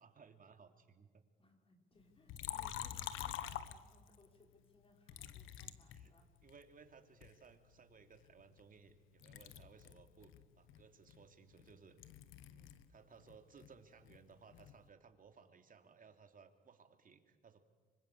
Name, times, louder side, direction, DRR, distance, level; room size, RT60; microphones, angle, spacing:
voice 1, 0.0-1.2 5.1-5.2 5.9-6.1 6.4-12.1 12.4-17.6, right 5 dB, 45° right, 6 dB, 3.2 m, -62 dB
voice 2, 1.4-6.3, left 2 dB, 25° left, 3 dB, 5.5 m, -67 dB
Liquid, 2.3-4.3 5.1-6.6 7.2-8.9 9.2-12.9 13.2-14.8, left 11 dB, 90° left, 1.4 m, -47 dB
26.0 x 24.5 x 8.5 m, 1.5 s
cardioid pair, 90°, 20 cm